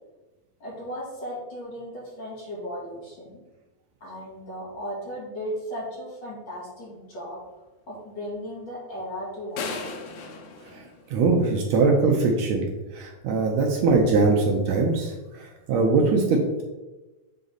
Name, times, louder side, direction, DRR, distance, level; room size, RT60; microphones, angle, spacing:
voice 1, 0.6-3.4 4.0-7.4 7.9-9.7, equal, 40° left, -6 dB, 2.4 m, -36 dB
sound 1, 9.6-11.7, left 4 dB, 75° left, 1.3 m, -36 dB
voice 2, 11.1-12.7 12.9-16.6, right 3 dB, 75° right, 1 dB, 1.9 m, -22 dB
8.2 x 3.9 x 4.0 m, 1.1 s
omnidirectional pair, 3.5 m